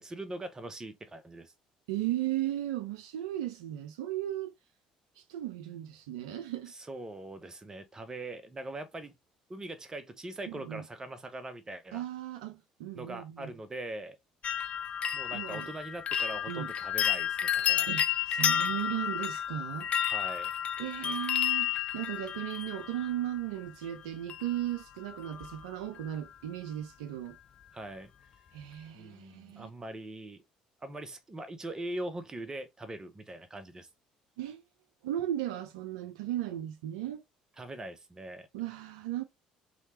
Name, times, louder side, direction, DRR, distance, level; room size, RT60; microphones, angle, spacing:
voice 1, 0.0-1.5 6.7-9.1 9.5-12.0 12.9-14.2 15.1-17.9 20.1-20.5 27.7-28.1 28.9-30.4 30.8-33.9 37.6-38.5, right 1 dB, 20° right, 0.6 m, -41 dB
voice 2, 1.9-4.6 5.2-6.7 10.5-10.8 11.9-13.5 15.3-15.7 16.5-16.7 17.9-19.9 20.8-27.4 28.5-29.7 34.4-34.6 35.0-37.2 38.5-39.2, right 13 dB, 70° right, 0.3 m, -36 dB
sound 1, 14.4-23.4 24.3-24.8 25.1-25.6 26.0-26.1, left 9 dB, 40° left, 0.3 m, -31 dB
2.9 x 2.1 x 2.8 m
figure-of-eight pair, 55°, 3 cm